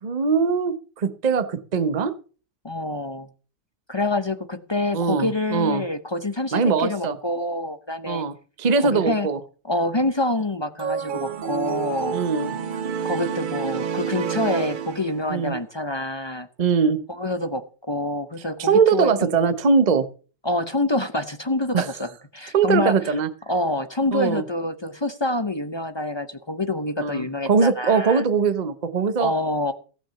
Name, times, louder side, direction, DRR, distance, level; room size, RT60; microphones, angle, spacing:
voice 1, 0.0-2.1 4.9-5.8 6.5-7.2 8.1-9.4 12.1-12.5 15.3-15.6 16.6-17.0 18.6-20.1 21.7-21.9 22.5-23.3 24.1-24.4 27.0-29.3, right 5 dB, 30° right, 11 dB, 0.9 m, -21 dB
voice 2, 2.6-3.3 3.9-8.2 8.8-9.3 9.6-12.2 13.0-16.5 17.1-19.3 20.4-23.1 23.5-28.2 29.2-29.7, left 2 dB, 30° left, 9 dB, 0.4 m, -26 dB
sound 1, 10.8-15.5, right 7 dB, 80° right, 0.4 m, -29 dB
16.5 x 6.1 x 7.0 m, 0.39 s
omnidirectional pair, 1.8 m